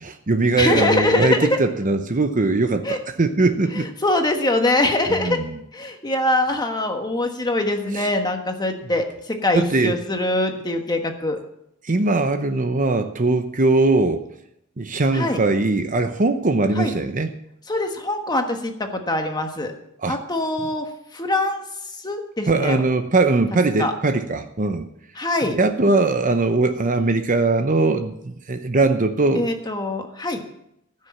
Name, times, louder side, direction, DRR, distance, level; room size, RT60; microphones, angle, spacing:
voice 1, 0.0-3.9 5.1-5.6 7.9-8.1 9.5-9.9 11.8-14.3 14.8-17.3 20.0-20.2 22.5-24.9 25.4-29.5, right 3 dB, 35° right, 7 dB, 0.8 m, -20 dB
voice 2, 0.6-1.6 2.8-3.0 3.8-5.4 5.7-11.4 15.1-15.4 16.8-16.9 17.7-19.7 20.1-21.6 22.0-22.8 23.8-23.9 25.2-25.6 29.3-30.4, left 2 dB, 20° left, 5 dB, 1.4 m, -23 dB
15.5 x 6.5 x 7.4 m, 0.78 s
head